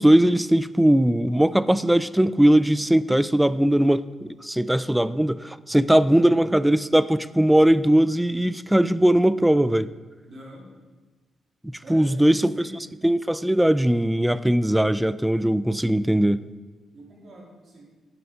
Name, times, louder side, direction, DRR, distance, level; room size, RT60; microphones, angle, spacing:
voice 1, 0.0-9.9 11.6-12.5 13.0-16.4, right 1 dB, 5° right, 16 dB, 0.3 m, -20 dB
voice 2, 5.9-6.6 10.3-10.7 11.8-12.7 16.9-17.8, equal, 50° right, -3 dB, 3.2 m, -44 dB
8.8 x 7.7 x 5.1 m, 1.3 s
cardioid pair, 100°, 0 cm